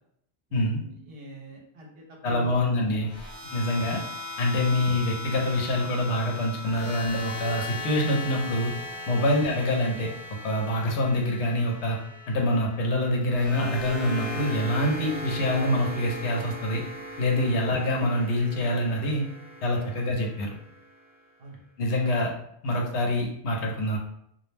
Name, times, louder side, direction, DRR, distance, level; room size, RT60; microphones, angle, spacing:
voice 1, 0.5-2.6 9.1-9.2 19.7-19.8 21.4-21.6, right 1 dB, 65° right, -1 dB, 0.8 m, -44 dB
voice 2, 2.2-3.1 3.5-4.0 4.4-8.7 9.1-10.1 10.4-12.0 12.3-16.8 17.2-19.2 19.6-20.5 21.8-22.3 22.6-24.0, left 1 dB, 80° left, 0 dB, 0.9 m, -25 dB
sound 1, 3.1-21.2, left 1 dB, 25° left, 0.5 m, -38 dB
2.3 x 2.0 x 3.1 m, 0.72 s
omnidirectional pair, 1.1 m